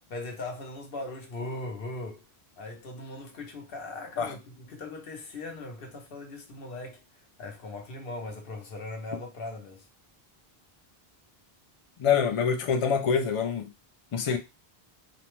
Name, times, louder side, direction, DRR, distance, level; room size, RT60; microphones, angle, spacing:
voice 1, 0.1-2.2 2.6-7.0 7.4-9.9, left 2 dB, 65° left, 0.9 m, -39 dB
voice 2, 12.0-13.7 14.1-14.4, left 6 dB, 50° left, 0.4 m, -25 dB
2.5 x 2.1 x 2.9 m
omnidirectional pair, 1.0 m